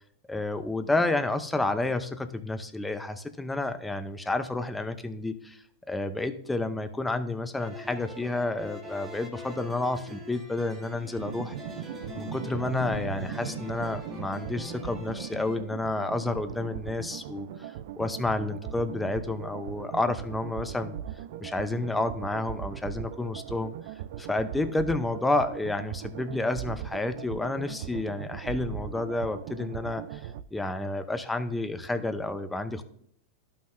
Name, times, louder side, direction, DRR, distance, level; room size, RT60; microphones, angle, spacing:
voice 1, 0.3-11.5 12.1-21.0 21.4-23.7 24.2-32.8, left 2 dB, 5° left, 9 dB, 0.6 m, -30 dB
sound 1, 7.6-15.6, left 1 dB, 20° right, 1.6 m, -42 dB
sound 2, 11.2-30.4, right 11 dB, 65° right, 0.4 m, -39 dB
12.0 x 5.8 x 2.6 m, 0.67 s
supercardioid pair, 130°, 0 cm